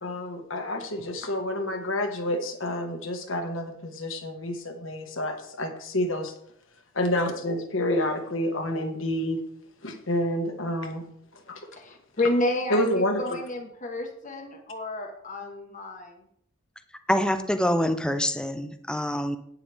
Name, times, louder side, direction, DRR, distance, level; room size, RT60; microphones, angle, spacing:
voice 1, 0.0-6.3 6.9-9.4 9.8-11.0 11.5-11.7 12.7-13.4, left 1 dB, 65° left, 5 dB, 1.6 m, -28 dB
voice 2, 11.7-16.2, left 1 dB, 40° left, 2 dB, 1.4 m, -30 dB
voice 3, 17.1-19.4, equal, 5° left, 9 dB, 0.7 m, -25 dB
11.0 x 9.5 x 3.5 m, 0.71 s
head